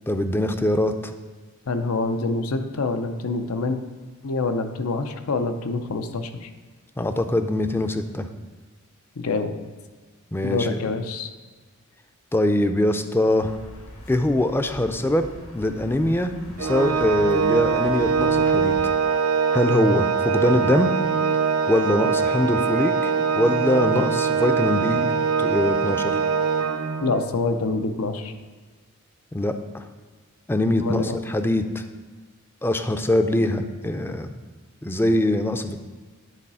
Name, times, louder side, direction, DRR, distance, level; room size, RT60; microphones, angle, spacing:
voice 1, 0.1-1.1 7.0-8.3 10.3-10.9 12.3-13.6 14.1-15.2 15.5-18.7 19.5-20.9 21.7-25.1 25.4-26.2 29.3-29.8 30.5-31.8 32.6-34.3 34.8-35.8, left 1 dB, 10° left, 8 dB, 0.4 m, -23 dB
voice 2, 1.7-3.8 4.2-6.5 9.2-9.5 10.4-11.3 27.0-28.3 30.8-31.2, left 3 dB, 90° left, 8 dB, 0.7 m, -26 dB
sound 1, 13.4-18.9, left 1 dB, 70° left, 1.3 m, -43 dB
Organ, 16.6-27.3, right 5 dB, 70° right, 0.6 m, -22 dB
10.0 x 4.0 x 5.5 m, 1.4 s
head